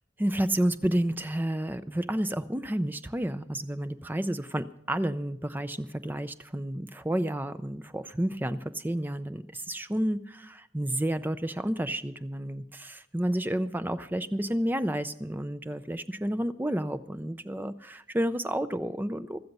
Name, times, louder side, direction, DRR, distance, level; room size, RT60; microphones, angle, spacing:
voice 1, 0.2-19.4, right 1 dB, 10° right, 12 dB, 0.5 m, -30 dB
16.0 x 12.5 x 5.4 m, 0.77 s
head